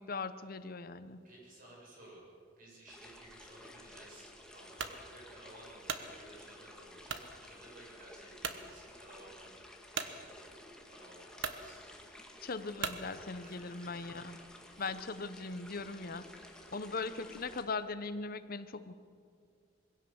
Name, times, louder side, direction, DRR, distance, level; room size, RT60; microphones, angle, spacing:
voice 1, 0.0-1.2 12.4-14.4 14.8-16.3 16.7-18.9, left 4 dB, 50° left, 11 dB, 0.8 m, -39 dB
voice 2, 1.2-2.3 2.6-9.6 9.9-10.5 10.8-11.8 13.4-14.1 14.7-14.9, right 1 dB, 45° right, -3 dB, 7.0 m, -56 dB
sound 1, 2.9-17.6, left 1 dB, 5° left, 1.8 m, -54 dB
sound 2, 4.8-5.0 5.6-6.1 7.1-7.3 7.9-8.0 8.4-8.6 10.0-10.1 10.9-11.0 11.4-11.6 12.8-13.1, right 6 dB, 70° right, 1.2 m, -38 dB
22.0 x 16.5 x 7.3 m, 2.3 s
head